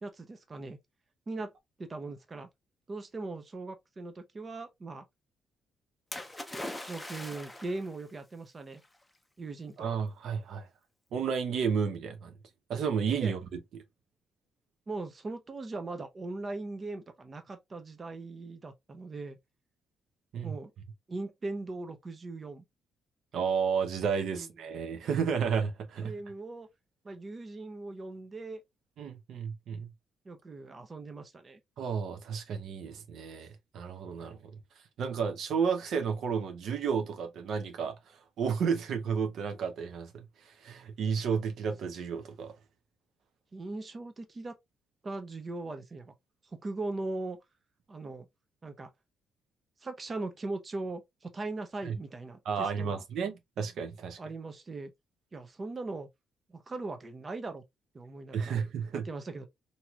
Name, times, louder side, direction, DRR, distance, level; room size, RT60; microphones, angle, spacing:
voice 1, 0.0-0.8 1.3-1.5 1.8-2.5 2.9-5.1 6.9-8.8 9.4-9.9 13.1-13.3 14.9-19.4 20.4-20.7 21.1-22.6 24.3-24.8 26.0-26.7 27.0-28.6 30.2-31.6 43.5-44.6 45.0-46.1 46.5-47.4 47.9-48.3 48.6-48.9 49.8-53.0 54.2-54.9 55.3-56.1 56.5-57.6 57.9-58.6 58.9-59.5, right 2 dB, 35° right, 0.7 m, -39 dB
Splash splatter, 6.1-7.9 8.8-8.9, left 1 dB, 10° left, 0.6 m, -40 dB
voice 2, 9.8-10.7 11.1-12.3 12.7-13.4 20.3-20.5 23.3-26.1 29.0-29.9 31.8-34.4 35.0-37.9 38.4-40.1 40.6-42.5 51.8-52.0 52.5-54.2 58.3-59.1, right 6 dB, 70° right, 0.7 m, -32 dB
3.0 x 2.7 x 2.3 m
cardioid pair, 90°, 0 cm